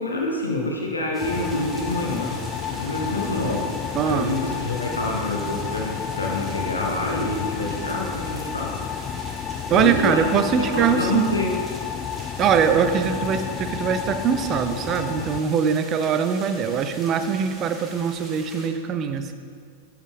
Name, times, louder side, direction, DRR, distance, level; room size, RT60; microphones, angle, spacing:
voice 1, 0.0-2.3 2.8-3.7 4.0-8.8 9.7-11.5, left 2 dB, 80° left, -1 dB, 0.9 m, -27 dB
sound 1, 1.1-18.7, right 2 dB, 15° right, 1.2 m, -42 dB
sound 2, 1.2-15.4, left 8 dB, 30° left, 0.3 m, -31 dB
voice 2, 3.9-4.4 9.7-11.4 12.4-19.3, right 7 dB, 30° right, 9 dB, 0.5 m, -22 dB
11.0 x 4.8 x 3.5 m, 2.2 s
figure-of-eight pair, 90°, 0 cm